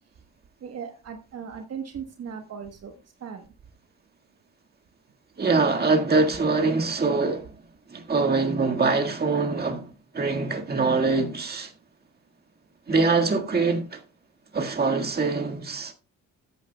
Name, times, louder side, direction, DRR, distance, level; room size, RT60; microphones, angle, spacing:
voice 1, 0.6-2.9 3.2-3.4, right 7 dB, 55° right, 1.2 m, -37 dB
voice 2, 5.4-7.5 7.9-9.9 10.1-11.7 12.9-14.0 14.5-15.9, right 3 dB, 30° right, 1.8 m, -23 dB
13.5 x 9.1 x 2.3 m
cardioid pair, 90°, 30 cm